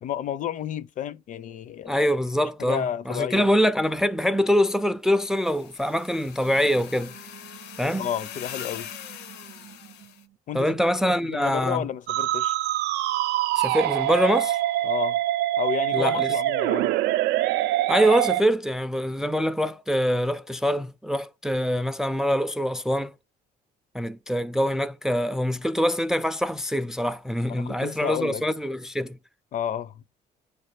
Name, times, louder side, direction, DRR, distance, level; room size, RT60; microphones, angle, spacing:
voice 1, 0.0-2.0 2.6-3.5 8.0-8.9 10.5-10.8 11.1-12.6 14.8-15.2 15.6-16.9 27.5-28.4 29.5-29.9, left 9 dB, 50° left, 0.5 m, -31 dB
voice 2, 1.9-7.1 7.8-8.1 10.5-11.9 13.6-14.6 15.9-16.3 17.9-23.1 23.9-29.2, equal, 5° right, 0.4 m, -24 dB
sound 1, 5.3-10.2, left 9 dB, 80° left, 0.8 m, -42 dB
sound 2, 6.4-10.4, right 12 dB, 40° right, 0.7 m, -49 dB
Musical instrument, 12.1-18.4, right 14 dB, 85° right, 0.4 m, -24 dB
9.2 x 3.3 x 6.6 m
cardioid pair, 110°, 17 cm